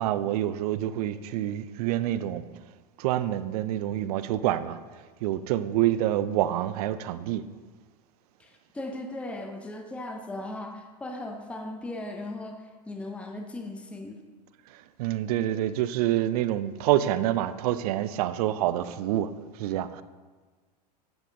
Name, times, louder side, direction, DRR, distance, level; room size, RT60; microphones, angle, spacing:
voice 1, 0.0-2.4 3.0-4.8 5.2-7.4 14.7-20.0, right 12 dB, 65° right, 13 dB, 0.5 m, -27 dB
voice 2, 8.7-12.6 12.9-14.2, left 2 dB, 5° left, 3 dB, 0.7 m, -37 dB
8.0 x 7.8 x 2.6 m, 1.4 s
hypercardioid pair, 100°, 21 cm